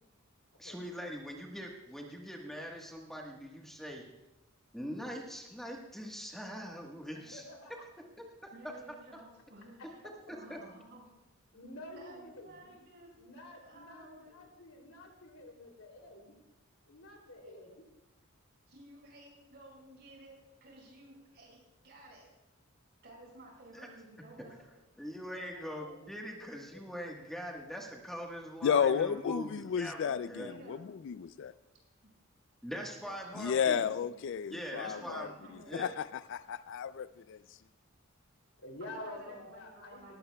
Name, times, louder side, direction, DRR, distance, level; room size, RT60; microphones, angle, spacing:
voice 1, 0.6-4.0 4.7-7.4 8.2-8.3 10.5-10.6 23.7-23.9 24.6-24.7 25.0-30.5 32.6-33.8 34.5-35.3 35.7-35.9, equal, ahead, 0 dB, 1.4 m, -42 dB
voice 2, 7.1-7.7 11.5-12.7 13.2-16.3 16.9-17.8 25.5-26.9 38.6-40.2, left 1 dB, 85° left, 1 dB, 3.0 m, -49 dB
voice 3, 8.5-10.0 10.3-11.1 11.8-13.2 13.6-14.4 17.4-17.5 18.7-22.3 23.0-24.8 30.3-30.8 32.0-32.1 33.0-34.1 34.7-35.9 38.8-40.2, right 1 dB, 55° right, -2 dB, 5.7 m, -54 dB
voice 4, 28.6-31.5 33.4-37.4, left 7 dB, 60° left, 15 dB, 0.3 m, -33 dB
19.5 x 15.5 x 2.3 m, 0.94 s
head